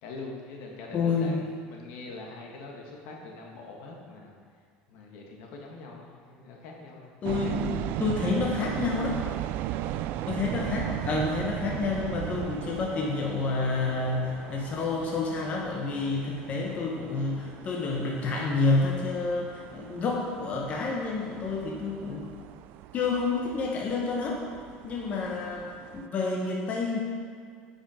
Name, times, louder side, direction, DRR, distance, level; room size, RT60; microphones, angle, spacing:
voice 1, 0.0-4.3 4.9-7.1 9.7-10.2, left 3 dB, 70° left, 0 dB, 1.6 m, -43 dB
voice 2, 0.9-1.4 7.2-9.2 10.3-22.3 22.9-24.4 24.8-27.0, left 3 dB, 40° left, -1 dB, 1.2 m, -29 dB
sound 1, 7.2-26.1, right 13 dB, 60° right, 0.3 m, -37 dB
8.8 x 5.8 x 5.0 m, 2.1 s
supercardioid pair, 120°, 4 cm